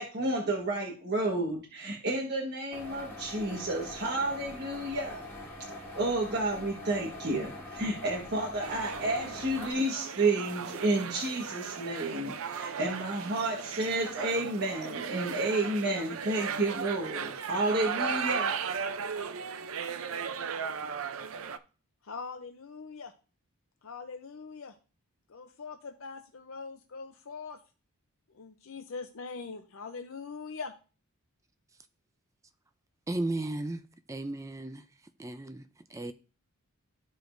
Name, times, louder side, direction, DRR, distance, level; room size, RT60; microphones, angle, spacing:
voice 1, 0.0-5.3 5.9-18.6, right 2 dB, 45° right, 1.4 m, -31 dB
sound 1, 2.7-9.7, left 1 dB, 10° left, 3.0 m, -43 dB
sound 2, 8.6-21.6, right 6 dB, 65° right, 0.5 m, -36 dB
voice 2, 22.0-23.1 23.8-24.7 25.3-27.6 28.3-30.7, left 4 dB, 65° left, 0.6 m, -42 dB
voice 3, 33.1-33.8 34.1-34.8 35.2-35.6 35.9-36.1, right 2 dB, 15° right, 0.4 m, -34 dB
13.5 x 4.9 x 2.6 m
head